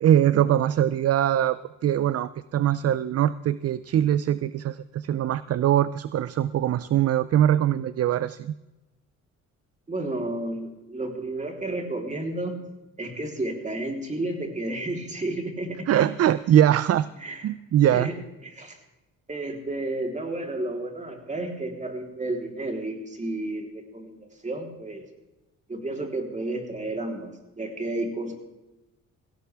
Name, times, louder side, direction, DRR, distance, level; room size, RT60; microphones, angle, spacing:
voice 1, 0.0-8.5 15.9-17.1 17.4-18.1, right 11 dB, 55° right, 16 dB, 0.5 m, -22 dB
voice 2, 9.9-12.6 13.0-15.9 17.2-17.4 17.9-18.1 18.4-18.8 19.3-25.0 25.7-28.3, right 2 dB, 25° right, 2 dB, 3.7 m, -32 dB
17.5 x 17.0 x 3.5 m, 1.0 s
cardioid pair, 90°, 30 cm